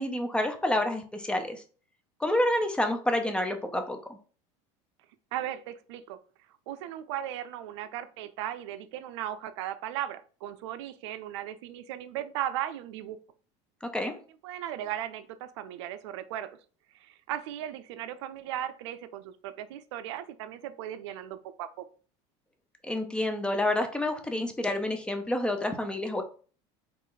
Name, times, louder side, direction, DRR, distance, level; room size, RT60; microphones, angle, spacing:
voice 1, 0.0-1.6 2.2-4.2 13.8-14.1 22.8-26.2, left 1 dB, 5° left, 6 dB, 0.6 m, -28 dB
voice 2, 5.3-6.2 6.7-13.2 14.4-16.5 16.9-21.9, right 11 dB, 80° right, 12 dB, 0.4 m, -37 dB
4.0 x 2.5 x 3.8 m, 0.40 s
supercardioid pair, 115°, 14 cm